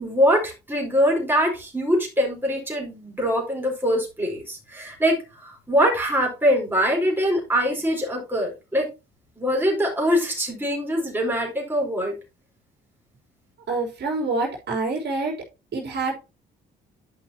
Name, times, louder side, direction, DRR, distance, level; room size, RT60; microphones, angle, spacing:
voice 1, 0.0-8.9 9.4-12.1, equal, 10° right, -1 dB, 4.2 m, -23 dB
voice 2, 13.7-15.3 15.7-16.2, right 3 dB, 60° right, -1 dB, 3.6 m, -26 dB
11.0 x 5.6 x 2.9 m, 0.26 s
cardioid pair, 90°, 20 cm